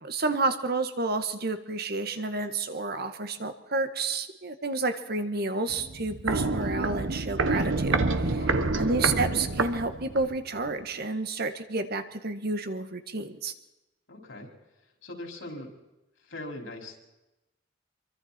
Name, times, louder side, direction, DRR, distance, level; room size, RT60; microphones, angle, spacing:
voice 1, 0.0-8.4 8.8-13.5, right 3 dB, 55° right, 9 dB, 1.6 m, -30 dB
Walk footsteps, 5.7-10.4 10.7-10.8, right 3 dB, 90° right, 1.2 m, -28 dB
voice 2, 8.3-8.8 14.1-14.5 15.0-15.7 16.2-17.0, left 1 dB, 85° left, 1 dB, 5.2 m, -41 dB
25.5 x 24.0 x 4.4 m, 0.97 s
head